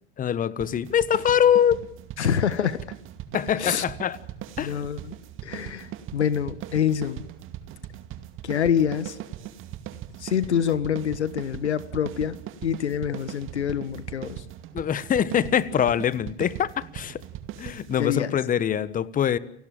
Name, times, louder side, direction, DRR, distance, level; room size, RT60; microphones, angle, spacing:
voice 1, 0.2-1.8 3.3-4.2 4.6-4.7 14.7-17.2 17.6-19.4, left 9 dB, 25° left, 1.4 m, -23 dB
sound 1, 0.6-18.1, right 12 dB, 40° right, 2.4 m, -39 dB
voice 2, 2.2-2.9 3.6-3.8 4.6-5.1 5.4-7.2 8.4-9.2 10.2-14.4 18.0-18.4, left 8 dB, 85° left, 1.5 m, -26 dB
30.0 x 18.0 x 7.5 m
hypercardioid pair, 100°, 33 cm